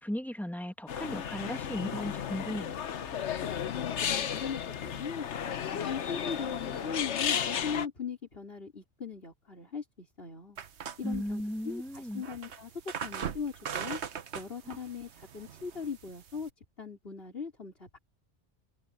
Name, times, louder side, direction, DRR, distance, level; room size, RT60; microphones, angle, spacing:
voice 1, 0.0-2.7 11.0-12.2 14.7-14.8, equal, ahead, 1.3 m, -36 dB
sound 1, 0.9-7.9, left 8 dB, 75° left, 1.2 m, -34 dB
voice 2, 3.6-5.3 5.6-10.6 11.0-12.7 13.0-14.0 14.3-16.5 16.8-18.0, left 6 dB, 55° left, 4.3 m, -39 dB
sound 2, 10.6-16.5, right 7 dB, 70° right, 1.3 m, -41 dB
omnidirectional pair, 1.2 m